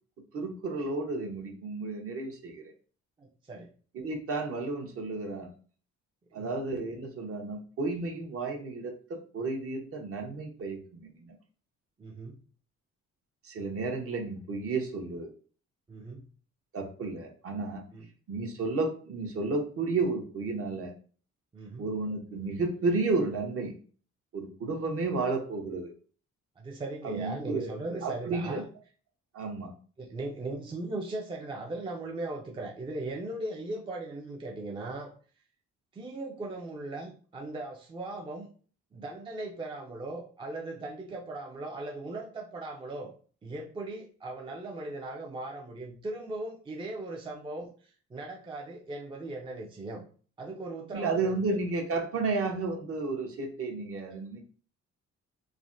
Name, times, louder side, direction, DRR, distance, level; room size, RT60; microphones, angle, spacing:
voice 1, 0.3-2.6 3.9-5.5 6.3-11.3 13.4-15.3 16.7-17.8 18.3-20.9 21.8-23.7 24.3-25.9 27.0-27.7 28.0-28.6 29.3-29.7 50.9-54.5, right 3 dB, 50° right, 3 dB, 0.8 m, -32 dB
voice 2, 3.2-3.7 6.3-6.5 12.0-12.4 15.9-16.3 17.9-18.1 21.5-21.9 26.6-28.7 30.0-35.1 35.9-38.5 38.9-43.1 43.4-50.0 50.4-51.6 54.1-54.2, right 2 dB, 15° right, 1 dB, 0.4 m, -38 dB
3.3 x 2.1 x 2.5 m, 0.41 s
cardioid pair, 90°, 30 cm